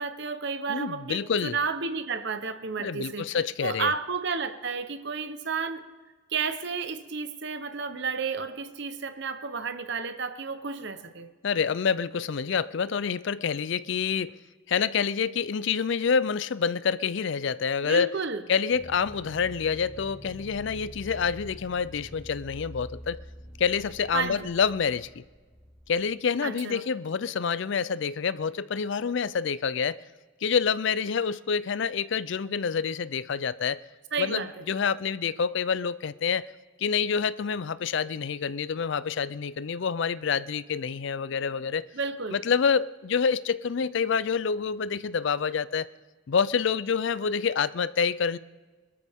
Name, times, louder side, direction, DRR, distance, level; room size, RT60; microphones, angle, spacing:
voice 1, 0.0-3.3 3.6-5.8 6.3-11.3 17.8-18.4 24.1-24.5 26.4-26.8 34.1-34.7 41.9-42.4, right 5 dB, 55° right, 10 dB, 0.9 m, -32 dB
voice 2, 0.7-1.6 2.8-3.9 11.4-14.4 14.7-18.1 18.5-23.2 23.6-25.2 25.9-30.0 30.4-33.8 34.2-36.5 36.8-41.8 42.3-45.9 46.3-48.4, left 6 dB, 60° left, 17 dB, 0.4 m, -27 dB
sound 1, 18.7-25.9, equal, ahead, 1.9 m, -46 dB
21.0 x 13.5 x 3.6 m, 1.4 s
head